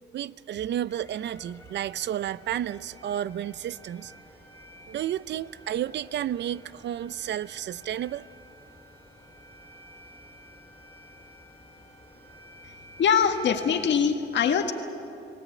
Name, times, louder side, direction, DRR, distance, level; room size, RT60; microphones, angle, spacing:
voice 1, 0.1-4.1 4.9-8.3, right 11 dB, 60° right, 18 dB, 0.6 m, -31 dB
sound 1, 0.9-13.9, equal, 15° left, 3.9 m, -51 dB
voice 2, 13.0-14.7, left 7 dB, 65° left, 5 dB, 1.8 m, -23 dB
30.0 x 18.0 x 8.7 m, 2.7 s
cardioid pair, 90°, 20 cm